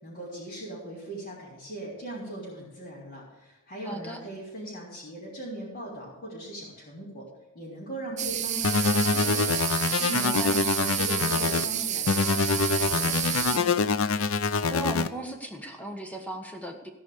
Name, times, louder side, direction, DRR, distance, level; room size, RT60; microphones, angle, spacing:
voice 1, 0.0-7.3 7.5-13.7, right 1 dB, 45° left, -9 dB, 3.8 m, -39 dB
voice 2, 3.8-4.2 10.1-10.6 14.7-16.9, right 1 dB, 5° left, 3 dB, 1.4 m, -36 dB
sound 1, 8.2-13.6, right 10 dB, 35° right, 0.8 m, -30 dB
sound 2, 8.6-11.6 12.1-15.1, left 4 dB, 85° left, 0.6 m, -25 dB
16.5 x 5.5 x 6.6 m, 1.0 s
head